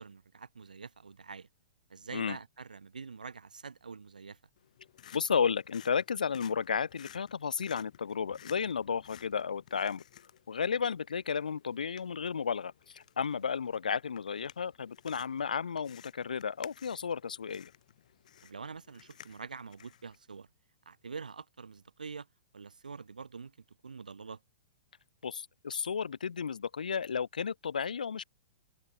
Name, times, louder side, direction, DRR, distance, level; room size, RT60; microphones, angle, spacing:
voice 1, 0.0-1.5 1.9-4.4 10.7-10.8 13.3-13.4 18.4-20.5 20.9-22.3 22.5-23.6 23.8-24.4, right 5 dB, 90° right, 0.8 m, -45 dB
sound 1, 4.6-20.2, left 10 dB, 65° left, 5.5 m, -56 dB
voice 2, 5.1-10.0 10.5-17.7 25.2-28.2, left 6 dB, 80° left, 0.7 m, -33 dB
hypercardioid pair, 120°, 4 cm